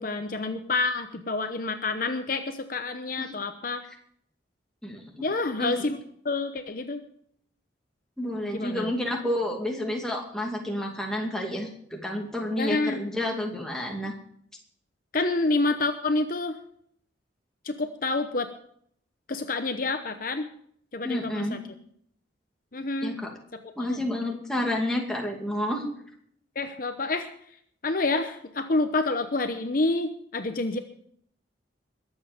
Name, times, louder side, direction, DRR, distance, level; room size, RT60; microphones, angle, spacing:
voice 1, 0.0-3.8 5.2-6.0 6.2-7.0 8.5-8.9 12.5-13.0 15.1-16.6 17.6-18.5 19.3-20.5 20.9-21.6 22.7-23.2 23.6-24.0 26.5-27.3 27.8-30.8, left 3 dB, 45° left, 7 dB, 0.9 m, -28 dB
voice 2, 4.8-5.2 5.6-5.9 8.2-14.1 21.0-21.6 23.0-23.3 23.8-25.8, left 1 dB, 5° left, 0 dB, 2.4 m, -30 dB
21.5 x 8.1 x 5.2 m, 0.66 s
head